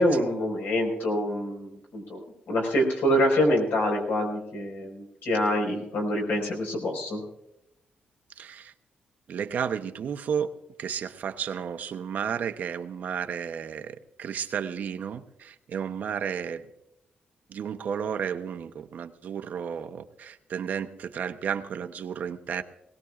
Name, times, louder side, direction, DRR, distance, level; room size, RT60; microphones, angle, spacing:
voice 1, 0.0-2.2 2.5-7.2, equal, 80° left, 2 dB, 4.7 m, -26 dB
voice 2, 8.4-8.7 9.3-10.5 10.8-16.7 17.5-22.6, right 7 dB, 55° right, 9 dB, 0.8 m, -32 dB
21.0 x 18.5 x 2.4 m, 0.87 s
wide cardioid pair, 170°, 3 cm